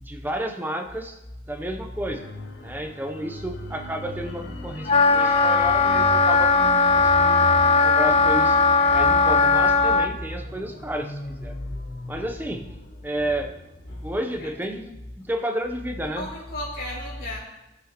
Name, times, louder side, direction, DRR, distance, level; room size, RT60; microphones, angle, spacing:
voice 1, 0.0-1.2 1.5-2.2 2.6-7.4 7.8-8.6 8.9-11.5 12.1-12.7 13.0-13.5 14.0-16.3, right 1 dB, 10° right, 5 dB, 0.7 m, -31 dB
sound 1, 2.0-14.4 14.7-14.9, left 1 dB, 75° left, 1.0 m, -36 dB
Wind instrument woodwind instrument, 4.9-10.1, left 4 dB, 35° left, 0.5 m, -18 dB
voice 2, 5.3-5.7 13.9-14.5 16.1-17.4, left 1 dB, 55° left, -9 dB, 2.1 m, -35 dB
17.0 x 6.1 x 3.0 m, 0.95 s
head